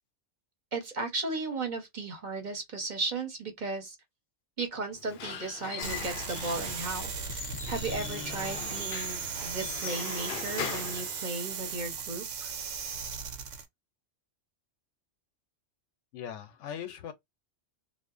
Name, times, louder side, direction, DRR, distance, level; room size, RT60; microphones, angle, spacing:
voice 1, 0.7-4.0 4.6-12.5, right 3 dB, 40° right, 1.0 m, -35 dB
Squeak / Wood, 4.9-11.8, left 8 dB, 60° left, 0.7 m, -40 dB
sound 1, 5.8-13.7, right 6 dB, 85° right, 1.0 m, -37 dB
voice 2, 16.1-17.1, left 9 dB, 80° left, 1.0 m, -39 dB
2.7 x 2.4 x 2.4 m
omnidirectional pair, 1.2 m